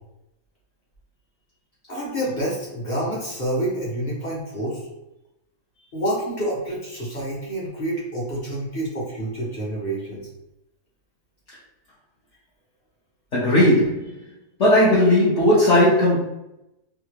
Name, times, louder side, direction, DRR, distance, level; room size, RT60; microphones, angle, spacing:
voice 1, 1.9-4.9 5.9-10.2, right 1 dB, 35° left, -5 dB, 1.0 m, -28 dB
voice 2, 13.3-14.1 14.6-16.2, left 1 dB, 55° left, -9 dB, 1.1 m, -17 dB
3.5 x 2.4 x 3.0 m, 0.90 s
omnidirectional pair, 1.6 m